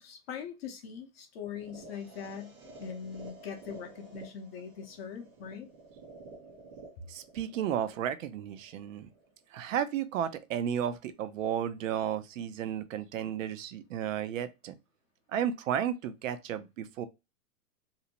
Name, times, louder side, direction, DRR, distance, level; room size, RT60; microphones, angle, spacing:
voice 1, 0.0-5.7, left 7 dB, 45° left, 0.6 m, -42 dB
sound 1, 1.4-9.4, right 3 dB, 20° right, 0.4 m, -51 dB
voice 2, 7.1-9.1 9.5-14.8 15.3-17.1, right 9 dB, 60° right, 0.6 m, -33 dB
2.7 x 2.1 x 2.8 m
hypercardioid pair, 135°, 44 cm